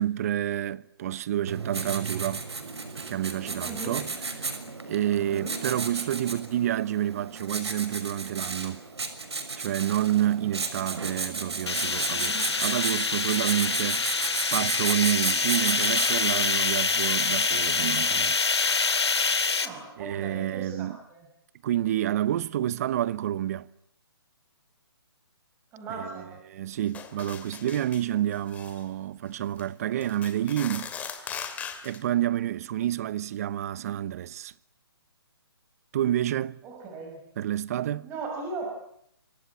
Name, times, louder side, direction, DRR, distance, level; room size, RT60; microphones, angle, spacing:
voice 1, 0.0-2.4 2.9-4.5 4.9-8.8 9.6-14.0 14.5-18.4 20.0-21.0 21.6-23.7 26.0-30.9 31.8-34.5 35.9-36.6 37.4-38.1, right 12 dB, 35° right, 1.1 m, -29 dB
Writing, 1.5-16.4, right 4 dB, 80° right, 6.2 m, -34 dB
voice 2, 3.6-4.0 5.3-5.6 10.8-11.0 12.1-12.7 19.6-21.3 25.7-26.3 36.6-37.2 38.0-38.8, right 3 dB, 15° right, 5.9 m, -38 dB
sound 1, 11.7-19.7, left 4 dB, 85° left, 3.1 m, -26 dB
sound 2, 26.9-28.1 28.3-28.8 29.4-29.6 30.0-32.0, left 7 dB, 10° left, 2.5 m, -39 dB
27.5 x 25.0 x 8.5 m
hypercardioid pair, 155°, 14 cm